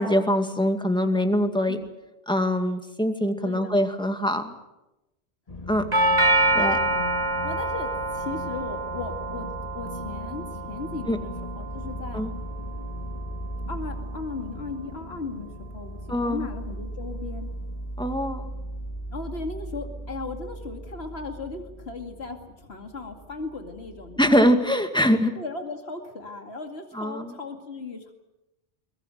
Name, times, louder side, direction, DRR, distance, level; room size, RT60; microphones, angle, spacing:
voice 1, 0.0-1.8 2.3-4.5 5.7-5.8 6.5-6.8 11.1-11.2 12.1-12.3 16.1-16.5 18.0-18.5 24.2-25.3 26.9-27.3, equal, 5° left, 6 dB, 2.2 m, -23 dB
voice 2, 3.4-3.8 5.8-6.0 6.5-7.1 7.4-9.5 9.7-12.2 13.7-17.5 19.1-24.4 25.3-28.1, left 3 dB, 80° left, 5 dB, 2.7 m, -37 dB
sound 1, 5.5-24.5, equal, 35° left, 1.7 m, -38 dB
Doorbell, 5.9-14.0, right 2 dB, 40° right, 2.0 m, -27 dB
22.5 x 20.5 x 9.2 m, 0.97 s
omnidirectional pair, 1.1 m